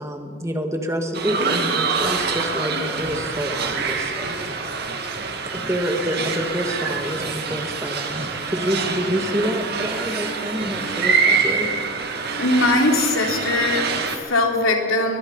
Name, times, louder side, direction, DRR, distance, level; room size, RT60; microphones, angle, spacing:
voice 1, 0.0-4.7 5.5-11.7, equal, 15° right, 4 dB, 2.0 m, -27 dB
sound 1, 1.1-14.2, right 5 dB, 50° right, 2.2 m, -25 dB
Speech synthesizer, 2.0-2.2 2.6-2.7 2.9-3.3 3.6-3.7 4.2-4.4 4.7-4.8 5.1-5.4 6.1-6.4 7.1-7.6 8.0-8.6 9.0-9.2 9.8-9.9 10.6-11.0 11.4-11.9, right 1 dB, 70° right, 4.1 m, -39 dB
voice 2, 12.4-15.2, left 2 dB, 85° left, 1 dB, 3.5 m, -20 dB
22.5 x 22.0 x 5.6 m, 2.4 s
head